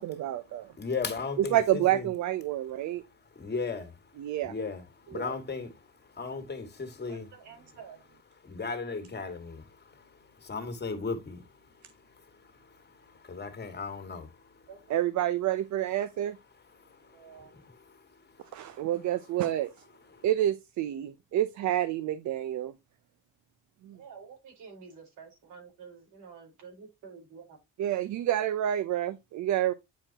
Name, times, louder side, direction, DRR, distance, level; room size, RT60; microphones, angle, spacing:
voice 1, 0.0-0.7 1.5-3.0 4.2-4.5 5.1-5.3 14.9-16.4 18.5-19.7 20.2-22.7 23.8-24.0 27.8-29.7, right 12 dB, 70° right, 0.7 m, -28 dB
voice 2, 0.8-2.1 3.0-7.3 8.4-14.7 16.6-18.9 20.1-20.3, left 4 dB, 35° left, 2.1 m, -38 dB
voice 3, 7.1-8.0 14.7-15.0 17.1-17.6 23.9-27.4, right 6 dB, 90° right, 4.7 m, -49 dB
9.4 x 4.5 x 2.9 m
cardioid pair, 90°, 30 cm